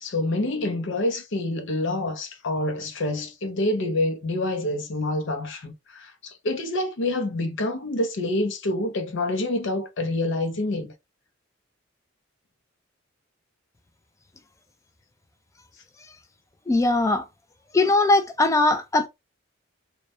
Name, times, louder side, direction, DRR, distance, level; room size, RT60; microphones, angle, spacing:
voice 1, 0.0-10.9, left 2 dB, 65° left, 0.6 m, -27 dB
voice 2, 16.7-17.3 17.7-19.1, left 2 dB, 15° left, 0.3 m, -20 dB
2.2 x 2.1 x 2.7 m
head